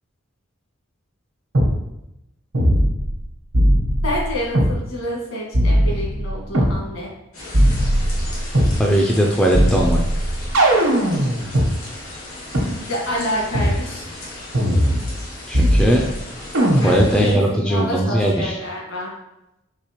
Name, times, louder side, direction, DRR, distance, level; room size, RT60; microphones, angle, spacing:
sound 1, 1.5-1.7 2.5-3.2 3.5-4.7 5.5-6.8 7.5-8.8 9.5-11.7 12.5-12.6 13.5-13.8 14.5-15.2 15.5-16.2 16.5-17.2, equal, 80° right, 1.1 m, -18 dB
voice 1, 4.0-7.1 12.6-14.1 16.8-19.1, equal, 65° left, -3 dB, 1.6 m, -28 dB
sound 2, 7.3-17.3, left 2 dB, 85° left, 1.6 m, -36 dB
voice 2, 8.8-10.0 15.5-16.1 16.8-18.6, equal, 5° left, -1 dB, 0.3 m, -18 dB
4.7 x 3.6 x 3.0 m, 0.89 s
head